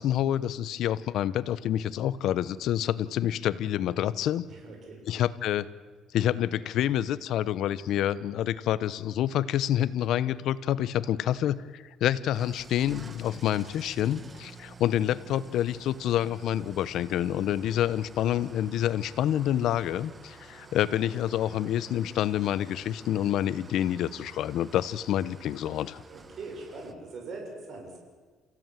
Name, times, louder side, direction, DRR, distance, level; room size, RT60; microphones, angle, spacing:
voice 1, 0.0-4.4 5.1-5.7 6.1-26.0, left 11 dB, 70° left, 17 dB, 1.0 m, -28 dB
voice 2, 4.5-5.0 26.1-28.0, right 3 dB, 50° right, 1 dB, 6.6 m, -41 dB
Engine starting / Idling, 12.3-26.9, right 3 dB, 25° right, 1.7 m, -50 dB
29.5 x 16.0 x 9.2 m, 1.4 s
cardioid pair, 120°, 0 cm